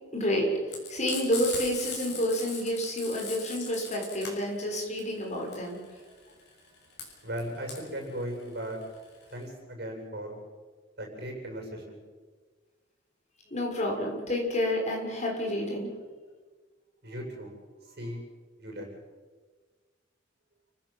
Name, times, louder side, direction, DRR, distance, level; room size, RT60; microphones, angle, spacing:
voice 1, 0.1-0.5 0.9-5.8 13.5-15.9, equal, 40° left, 0 dB, 6.6 m, -29 dB
Frying (food), 0.7-9.4, left 5 dB, 65° left, 7.1 m, -39 dB
voice 2, 7.2-8.8 9.3-10.4 11.0-12.0 17.0-17.5 17.8-18.2 18.6-18.9, equal, 60° right, 2 dB, 7.8 m, -37 dB
30.0 x 16.5 x 7.5 m, 1.4 s
head